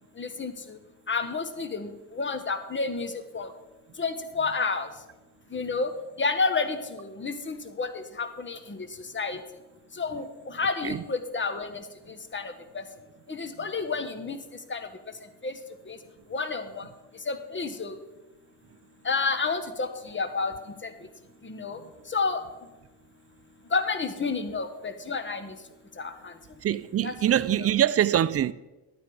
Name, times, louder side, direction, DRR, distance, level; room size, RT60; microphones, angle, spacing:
voice 1, 0.2-0.8 1.1-3.5 4.0-4.9 5.5-5.9 6.2-8.8 9.1-9.4 10.0-11.8 12.3-12.8 13.3-14.4 14.7-14.9 15.4-15.5 15.9-16.0 16.3-16.9 17.3-17.9 19.0-20.5 20.8-20.9 21.4-21.8 22.1-22.4 23.7-25.5 26.0-26.3 27.0-27.1 27.6-27.7, left 4 dB, 30° left, 1.5 m, -30 dB
voice 2, 26.6-28.5, right 10 dB, 40° right, 0.5 m, -24 dB
12.0 x 9.3 x 5.0 m
cardioid pair, 75°, 39 cm